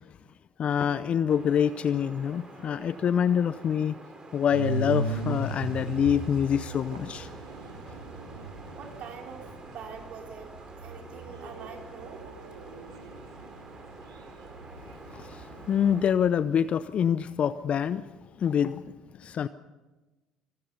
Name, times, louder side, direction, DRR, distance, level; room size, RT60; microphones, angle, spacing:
voice 1, 0.6-4.0 4.3-7.3 15.1-18.0 18.4-18.8 19.2-19.5, left 8 dB, 45° left, 0.7 m, -26 dB
Wind, 1.3-16.1, right 3 dB, 30° right, 4.3 m, -48 dB
sound 1, 4.5-16.1, right 2 dB, 85° right, 2.2 m, -38 dB
voice 2, 8.7-10.5 10.8-12.2, right 6 dB, 55° right, 4.3 m, -44 dB
26.5 x 20.0 x 5.5 m
hypercardioid pair, 60°, 3 cm